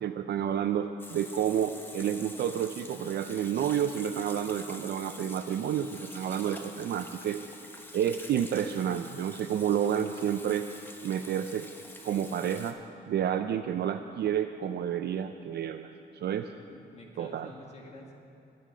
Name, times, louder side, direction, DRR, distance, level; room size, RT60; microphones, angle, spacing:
voice 1, 0.0-7.4 7.9-10.7 11.0-11.7 12.0-12.8 13.1-16.5 17.2-17.5, right 9 dB, 60° right, 8 dB, 0.5 m, -30 dB
Water tap faucet / Sink (filling or washing), 1.0-12.7, left 1 dB, 10° left, 0.9 m, -47 dB
voice 2, 16.7-18.1, left 1 dB, 35° left, 0 dB, 1.9 m, -49 dB
21.0 x 9.4 x 5.0 m, 2.7 s
wide cardioid pair, 165°, 19 cm